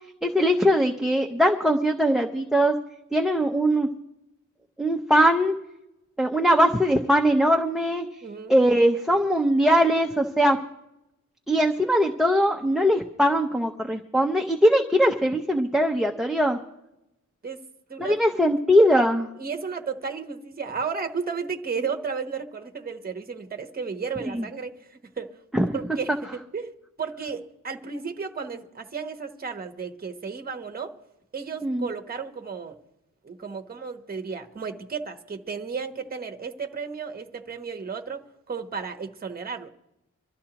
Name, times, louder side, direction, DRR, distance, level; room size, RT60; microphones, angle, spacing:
voice 1, 0.2-2.7 3.1-3.9 4.8-5.6 6.2-8.1 8.5-10.6 11.5-16.6 18.0-19.3 24.3-24.4 25.5-25.8 31.6-31.9, equal, ahead, 2 dB, 0.6 m, -21 dB
voice 2, 8.2-8.5 17.4-17.6 17.9-18.2 19.4-25.3 25.7-30.9 31.3-32.8 33.2-39.7, right 5 dB, 30° right, 6 dB, 1.0 m, -33 dB
25.0 x 12.5 x 2.9 m, 0.89 s
wide cardioid pair, 165°, 31 cm